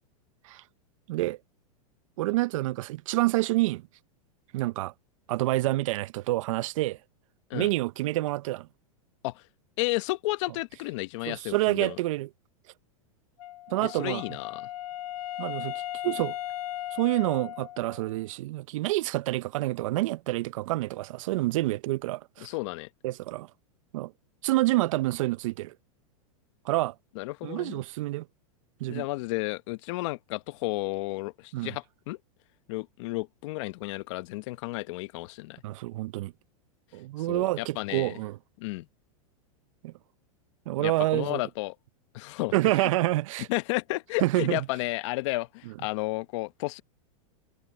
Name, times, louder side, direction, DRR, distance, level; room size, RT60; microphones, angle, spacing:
voice 1, 2.2-3.8 4.5-4.9 5.3-7.0 7.5-8.7 11.3-12.3 13.7-14.2 15.4-15.7 16.0-16.4 16.9-22.5 23.0-23.5 23.9-24.1 24.4-25.7 26.6-26.9 27.4-28.3 28.8-29.0 31.5-31.7 35.6-36.3 36.9-38.4 39.8-39.9 40.7-41.4 42.5-43.5 44.2-44.6, right 18 dB, 65° right, 0.7 m, -28 dB
voice 2, 9.8-12.0 13.8-14.7 22.4-22.9 27.1-27.8 28.9-32.2 32.7-35.6 37.2-38.2 38.6-38.9 40.8-41.7 42.1-42.9 43.5-46.8, left 21 dB, 55° left, 1.1 m, -32 dB
Wind instrument woodwind instrument, 13.4-18.2, left 14 dB, 85° left, 1.0 m, -37 dB
hypercardioid pair, 130°, 18 cm